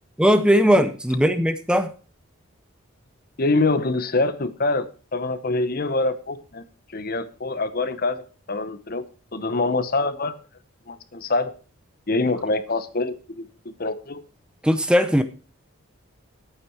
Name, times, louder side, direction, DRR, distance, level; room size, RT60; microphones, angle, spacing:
voice 1, 0.2-1.9 14.6-15.2, equal, 5° right, 10 dB, 0.7 m, -18 dB
voice 2, 3.4-6.6 6.9-8.2 8.5-9.1 9.3-10.4 10.9-11.5 12.1-14.2, left 3 dB, 45° left, 13 dB, 0.9 m, -25 dB
11.5 x 9.0 x 4.6 m, 0.37 s
head